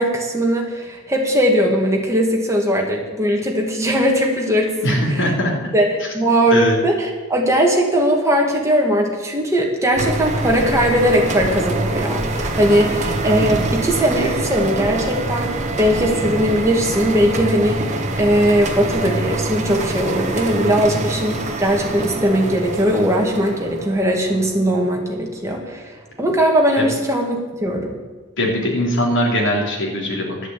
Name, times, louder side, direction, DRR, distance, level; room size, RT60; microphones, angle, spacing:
voice 1, 0.0-5.2 5.7-5.9 6.1-25.9 26.2-28.0, equal, 15° right, 0 dB, 2.2 m, -19 dB
voice 2, 4.8-5.7 6.5-6.8 26.8-26.9 28.4-30.5, equal, 60° left, -1 dB, 3.2 m, -20 dB
sound 1, 9.9-25.4, right 2 dB, 35° right, 1.5 m, -25 dB
11.5 x 8.2 x 8.6 m, 1.3 s
head